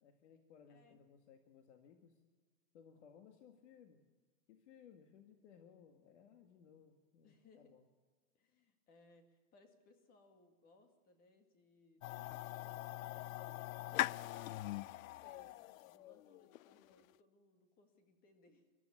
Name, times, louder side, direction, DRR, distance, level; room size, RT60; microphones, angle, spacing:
voice 1, 0.0-2.2 2.7-4.0 4.5-7.9, left 7 dB, 60° left, 6 dB, 1.9 m, -62 dB
voice 2, 0.7-1.0 7.2-7.8 8.3-14.5 15.2-15.6 15.8-18.7, left 2 dB, 20° left, 7 dB, 2.0 m, -68 dB
sound 1, 12.0-17.0, left 16 dB, 75° left, 0.6 m, -42 dB
23.0 x 13.5 x 9.7 m, 1.4 s
supercardioid pair, 175°, 40 cm